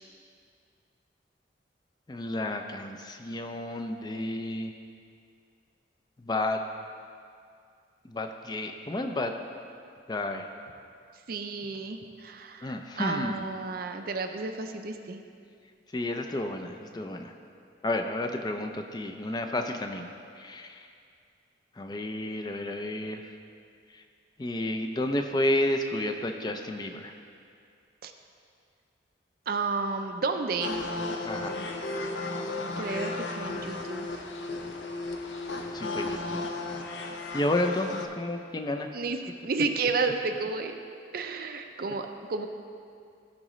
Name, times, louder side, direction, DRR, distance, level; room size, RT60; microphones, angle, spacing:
voice 1, 2.1-4.7 6.2-6.6 8.0-9.3 10.1-10.5 12.6-13.5 15.9-17.3 17.8-20.1 20.4-20.8 21.8-23.2 24.4-27.1 31.2-31.6 35.7-36.4 37.3-38.9, left 1 dB, 20° left, 5 dB, 0.4 m, -31 dB
voice 2, 11.3-15.2 28.0-28.1 29.5-30.8 32.8-34.2 38.9-40.7 41.1-42.5, right 4 dB, 50° right, 6 dB, 0.5 m, -32 dB
sound 1, 30.6-38.1, left 2 dB, 75° left, 0.6 m, -34 dB
14.5 x 4.9 x 3.1 m, 2.3 s
head